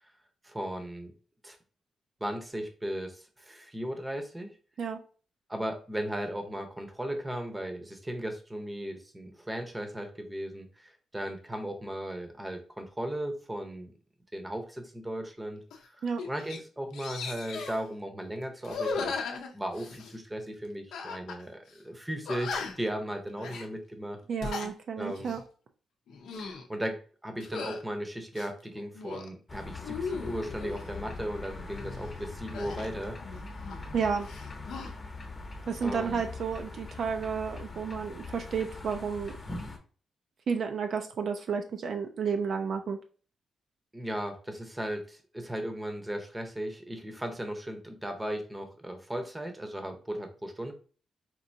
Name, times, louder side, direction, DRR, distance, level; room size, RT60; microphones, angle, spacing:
voice 1, 0.4-1.1 1.4-1.6 2.2-4.5 5.5-13.9 14.3-15.6 15.9-19.2 19.5-24.2 25.0-25.3 26.4-33.4 35.8-36.2 43.9-50.7, right 1 dB, 10° right, 5 dB, 0.7 m, -36 dB
sound 1, 15.7-15.9 16.2-16.6 16.9-17.8 18.6-20.2 20.9-21.4 21.7-21.8 22.3-22.9 23.4-23.7 24.2-24.7 25.2-25.4 26.1-26.7 27.4-27.8 28.3-29.3 29.8-30.7 32.5-34.0 34.2-34.9, left 4 dB, 85° left, 0.6 m, -37 dB
voice 2, 24.3-25.4 33.9-34.3 35.7-39.3 40.5-43.0, right 6 dB, 60° right, 6 dB, 0.4 m, -31 dB
sound 2, 29.5-39.8, left 3 dB, 25° left, 0.8 m, -42 dB
4.4 x 2.6 x 2.6 m, 0.39 s
cardioid pair, 120°, 0 cm